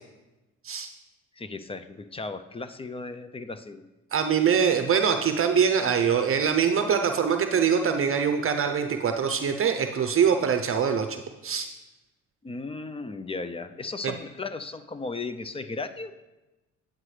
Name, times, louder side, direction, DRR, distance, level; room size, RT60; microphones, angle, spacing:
voice 1, 1.4-3.8 12.4-16.1, left 3 dB, 20° left, 11 dB, 0.4 m, -36 dB
voice 2, 4.1-11.7 14.0-14.1, right 7 dB, 45° right, 7 dB, 0.6 m, -23 dB
9.3 x 8.7 x 3.3 m, 1.1 s
cardioid pair, 90°, 30 cm